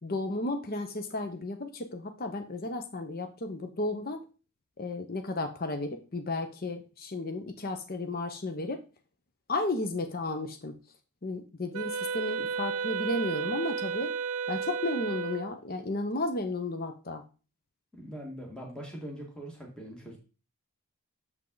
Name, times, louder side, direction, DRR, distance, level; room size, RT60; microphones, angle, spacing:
voice 1, 0.0-4.2 4.8-8.8 9.5-10.7 11.2-14.1 14.5-17.2, left 2 dB, 40° left, 7 dB, 0.8 m, -33 dB
Wind instrument woodwind instrument, 11.7-15.6, right 6 dB, 75° right, 0.5 m, -33 dB
voice 2, 18.0-20.2, equal, 5° left, -1 dB, 1.6 m, -42 dB
7.5 x 5.4 x 3.9 m, 0.33 s
head